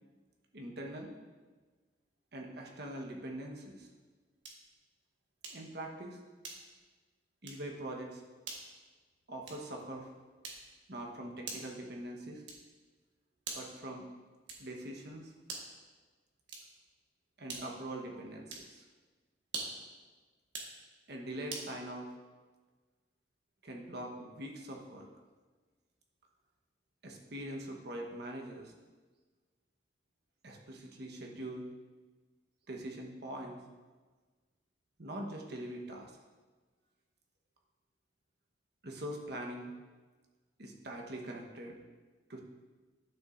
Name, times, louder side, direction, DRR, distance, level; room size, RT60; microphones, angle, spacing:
voice 1, 0.5-1.1 2.3-3.9 5.5-6.2 7.4-8.2 9.3-10.1 10.9-12.4 13.5-14.1 14.6-15.3 17.4-18.8 21.1-22.1 23.6-25.1 27.0-28.7 30.4-31.7 32.7-33.6 35.0-36.2 38.8-39.7 40.6-41.8 42.3-42.4, right 1 dB, 65° right, 0 dB, 1.2 m, -43 dB
sound 1, 4.4-4.7 5.4-5.8 6.4-6.9 7.4-7.7 8.4-8.7 9.4-9.8 10.4-10.8 11.4-11.8 12.4-12.8 13.4-13.8 14.5-14.8 15.4-15.8 16.4-16.9 17.5-17.9 18.5-18.8 19.4-19.9 20.4-20.8 21.5-21.7, right 3 dB, 85° right, 1.4 m, -44 dB
11.5 x 6.8 x 2.6 m, 1.4 s
head